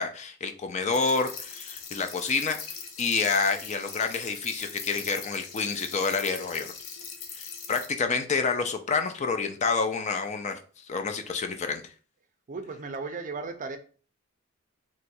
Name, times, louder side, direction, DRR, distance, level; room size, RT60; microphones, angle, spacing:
voice 1, 0.0-6.7 7.3-10.6 10.9-11.8, left 4 dB, 35° left, 0.4 m, -28 dB
sound 1, 0.9-7.9, left 6 dB, 85° left, 0.7 m, -41 dB
voice 2, 12.5-13.8, right 4 dB, 40° right, 0.4 m, -35 dB
3.0 x 2.3 x 4.2 m
head